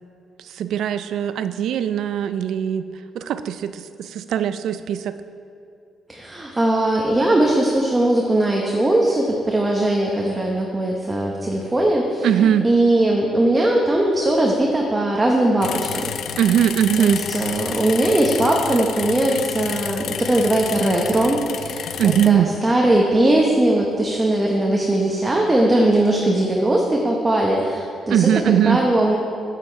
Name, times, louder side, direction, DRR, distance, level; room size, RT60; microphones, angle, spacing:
voice 1, 0.4-2.8 3.1-5.2 12.2-12.7 16.4-17.2 22.0-22.5 28.1-28.8, right 9 dB, 75° right, 12 dB, 0.4 m, -20 dB
voice 2, 6.1-12.3 12.6-16.0 17.0-28.3 28.6-29.2, right 1 dB, 20° right, -1 dB, 1.0 m, -19 dB
sound 1, 15.6-22.3, left 9 dB, 70° left, 0.4 m, -30 dB
8.8 x 7.6 x 4.5 m, 2.4 s
cardioid pair, 90°, 0 cm